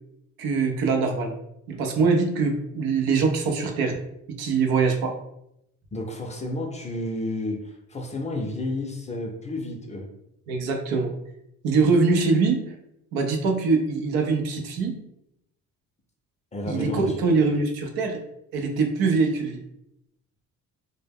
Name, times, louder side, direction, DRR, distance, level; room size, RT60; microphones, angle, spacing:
voice 1, 0.4-1.3 1.7-3.9 4.3-5.1 10.5-11.1 11.6-12.6 13.1-14.9 16.7-18.2 18.5-19.6, right 4 dB, 85° right, 4 dB, 0.5 m, -23 dB
voice 2, 5.9-10.1 16.5-17.2, left 1 dB, 20° left, 1 dB, 0.5 m, -31 dB
2.1 x 2.0 x 3.4 m, 0.79 s
cardioid pair, 85°, 36 cm